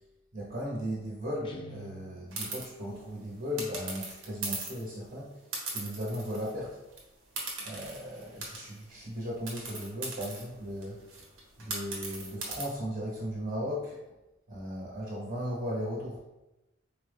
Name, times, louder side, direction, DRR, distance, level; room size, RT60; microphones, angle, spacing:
voice 1, 0.3-5.3 5.7-6.8 7.6-11.0 11.6-14.0 14.5-16.2, equal, 45° right, -6 dB, 0.9 m, -36 dB
Guitar, 1.4-2.7, left 1 dB, 25° left, 0.3 m, -48 dB
sound 1, 2.3-2.7 3.6-4.9 5.5-6.6 6.9-7.0 7.4-8.8 9.5-12.6, right 3 dB, 75° right, 1.0 m, -39 dB
4.4 x 2.1 x 3.4 m, 0.95 s
head